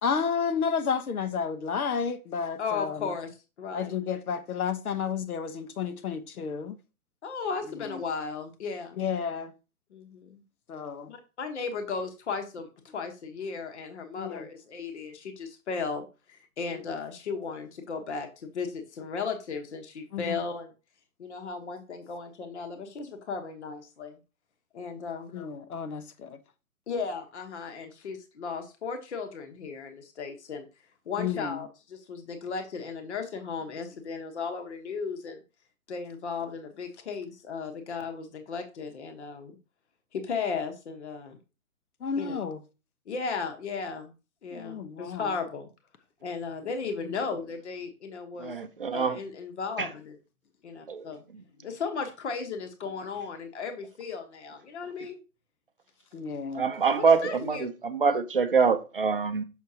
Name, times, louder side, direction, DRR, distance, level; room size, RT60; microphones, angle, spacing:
voice 1, 0.0-3.1 3.7-6.8 7.7-8.0 8.9-9.5 10.7-11.1 14.2-14.5 16.7-16.9 20.1-20.4 25.3-26.4 31.2-31.6 42.0-42.6 44.5-45.4 47.0-47.2 56.1-56.7, left 6 dB, 75° left, 1.1 m, -31 dB
voice 2, 2.6-3.3 3.6-3.9 7.2-9.0 9.9-10.4 11.1-12.7 12.9-20.7 21.2-24.2 24.7-25.3 26.9-30.7 31.1-35.4 35.9-39.5 40.1-41.4 42.2-42.4 43.1-44.1 44.4-45.7 46.2-48.6 48.9-50.2 50.6-51.2 51.6-55.2 56.9-57.7, left 5 dB, 50° left, 1.2 m, -35 dB
voice 3, 48.4-49.2 49.8-49.9 50.9-51.0 56.5-59.4, right 5 dB, 40° right, 0.5 m, -25 dB
6.5 x 6.1 x 2.8 m
hypercardioid pair, 175°, 44 cm